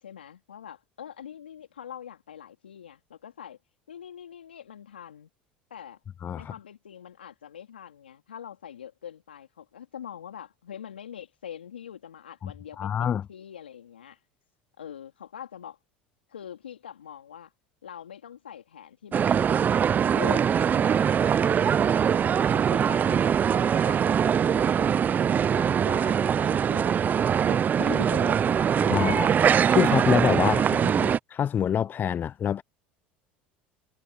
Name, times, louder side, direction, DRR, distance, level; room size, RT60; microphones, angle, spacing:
voice 1, 0.0-3.6 3.9-5.3 5.7-6.0 6.3-14.2 14.8-15.8 16.3-17.5 17.8-19.6 20.0-22.1 22.5-27.2 27.5-29.2 30.4-31.1, left 9 dB, 85° left, 3.5 m, -43 dB
voice 2, 6.2-6.5 12.4-12.5 12.8-13.3 28.9-29.3 29.7-32.6, left 9 dB, 35° left, 0.8 m, -26 dB
sound 1, 19.1-31.2, right 8 dB, 35° right, 0.6 m, -22 dB
hypercardioid pair, 75°, 5 cm